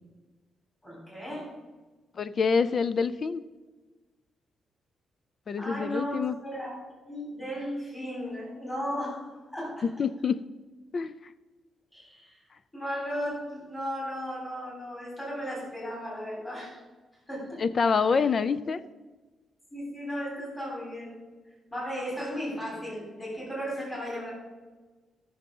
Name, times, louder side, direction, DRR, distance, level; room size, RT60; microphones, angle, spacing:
voice 1, 0.8-1.6 5.6-6.8 7.1-9.9 11.9-12.4 12.7-16.8 17.3-17.6 18.1-18.3 19.7-21.2 21.7-24.3, equal, 15° left, -4 dB, 3.8 m, -35 dB
voice 2, 2.2-3.4 5.5-6.3 9.8-10.5 10.9-11.3 17.6-18.8, left 5 dB, 35° left, 14 dB, 0.3 m, -26 dB
14.0 x 6.5 x 5.3 m, 1.3 s
wide cardioid pair, 175°, 0 cm